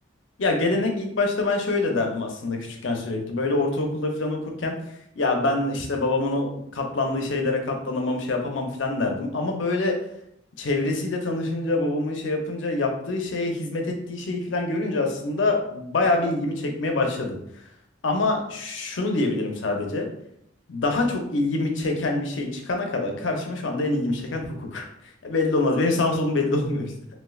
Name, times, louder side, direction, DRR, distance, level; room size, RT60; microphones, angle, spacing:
voice 1, 0.4-4.8 5.2-10.0 10.6-17.4 18.0-20.1 20.7-24.9 25.2-26.9, left 2 dB, 80° left, 2 dB, 0.6 m, -25 dB
3.1 x 3.0 x 2.3 m, 0.74 s
head